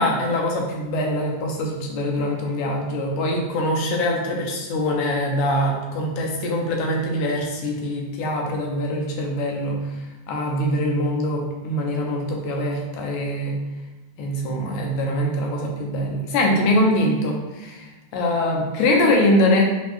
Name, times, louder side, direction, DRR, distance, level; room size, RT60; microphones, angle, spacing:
voice 1, 0.0-10.0 10.3-13.6 14.2-19.6, left 1 dB, 90° left, 0 dB, 2.2 m, -23 dB
6.0 x 2.2 x 3.0 m, 1.1 s
omnidirectional pair, 3.4 m